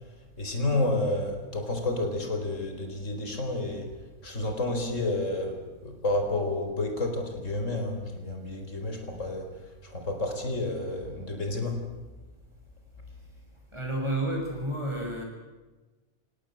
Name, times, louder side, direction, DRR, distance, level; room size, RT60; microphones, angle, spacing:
voice 1, 0.4-3.9 4.2-9.5 9.8-11.8, left 2 dB, 90° left, 5 dB, 4.7 m, -30 dB
voice 2, 13.7-15.2, right 1 dB, 25° right, 0 dB, 7.3 m, -30 dB
28.5 x 18.0 x 7.7 m, 1.2 s
omnidirectional pair, 1.3 m